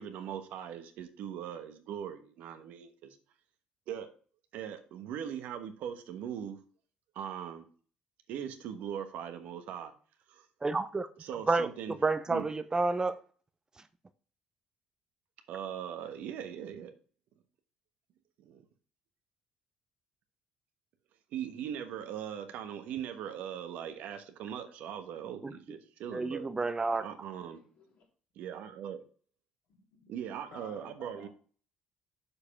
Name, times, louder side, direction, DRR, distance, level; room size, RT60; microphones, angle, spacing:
voice 1, 0.0-3.2 3.9-4.1 4.5-6.6 7.1-7.7 8.3-9.9 10.3-10.4 11.2-12.0 12.3-12.4 15.5-16.9 18.4-18.6 21.3-26.5 27.0-27.6 28.4-29.0 30.1-31.3, right 9 dB, 70° right, 1.1 m, -40 dB
voice 2, 10.6-11.1 11.5-13.2 25.4-25.5 26.1-27.0, right 3 dB, 25° right, 0.7 m, -30 dB
voice 3, 27.5-28.0 29.7-30.1 30.5-31.3, left 4 dB, 65° left, 3.4 m, -54 dB
6.9 x 4.9 x 5.8 m
supercardioid pair, 65°, 3 cm